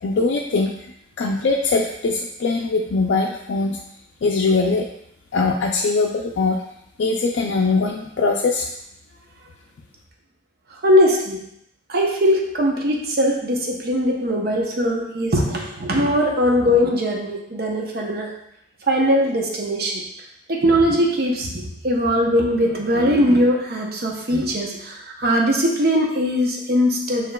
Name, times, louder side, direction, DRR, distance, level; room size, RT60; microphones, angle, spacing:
voice 1, 0.0-0.8 1.2-3.8 4.2-4.9 5.3-6.6 7.0-8.7, left 3 dB, 75° left, 0 dB, 0.4 m, -21 dB
voice 2, 10.7-11.5 11.9-18.3 18.8-20.0 20.5-27.3, equal, 55° right, 0 dB, 0.7 m, -20 dB
6.7 x 2.9 x 2.2 m, 0.76 s
head